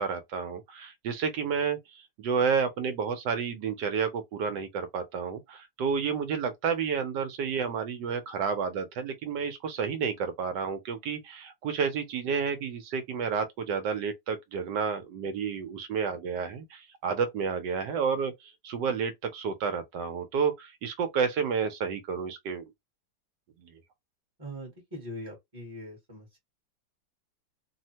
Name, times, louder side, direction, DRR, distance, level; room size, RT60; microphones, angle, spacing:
voice 1, 0.0-18.3 18.6-22.7 23.6-23.7, right 6 dB, 75° right, 1.2 m, -30 dB
voice 2, 24.4-26.4, equal, 15° right, 0.9 m, -42 dB
3.3 x 2.1 x 2.8 m
omnidirectional pair, 2.0 m